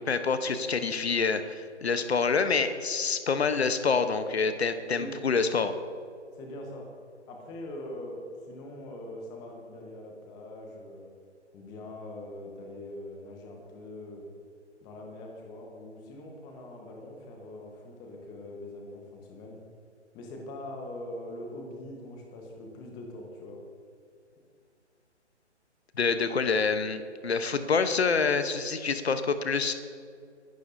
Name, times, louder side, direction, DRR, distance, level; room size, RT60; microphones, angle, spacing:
voice 1, 0.1-5.7 26.0-29.7, left 5 dB, 60° left, 10 dB, 1.0 m, -27 dB
voice 2, 6.3-6.9 7.3-11.1 11.5-14.2 14.8-19.6 20.1-23.6, left 1 dB, 10° left, 1 dB, 1.2 m, -42 dB
21.5 x 11.5 x 2.7 m, 2.3 s
figure-of-eight pair, 145°, 36 cm